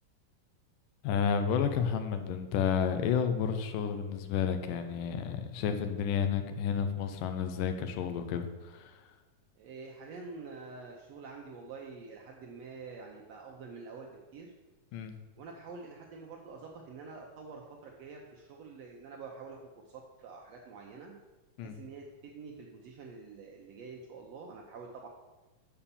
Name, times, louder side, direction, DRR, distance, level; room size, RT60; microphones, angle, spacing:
voice 1, 1.0-8.9 14.9-15.1 21.6-21.7, left 7 dB, 90° left, 8 dB, 2.4 m, -31 dB
voice 2, 9.6-14.5 15.4-19.6 19.8-21.2 21.6-25.1, right 4 dB, 70° right, 0 dB, 1.6 m, -47 dB
7.0 x 5.6 x 6.9 m, 1.2 s
omnidirectional pair, 3.7 m